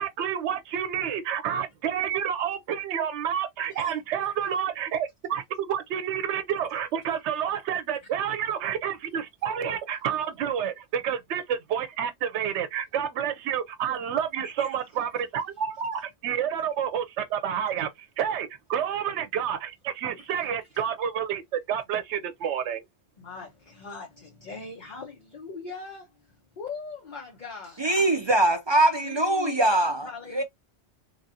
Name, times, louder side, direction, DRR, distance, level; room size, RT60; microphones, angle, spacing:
voice 1, 0.0-22.8, right 8 dB, 85° right, 0.9 m, -29 dB
voice 2, 14.4-15.2 20.1-20.5 23.2-26.1 26.6-27.8 29.0-30.4, left 4 dB, 45° left, 1.0 m, -40 dB
voice 3, 27.8-30.4, right 2 dB, 40° right, 0.4 m, -23 dB
3.0 x 2.5 x 2.6 m
omnidirectional pair, 1.1 m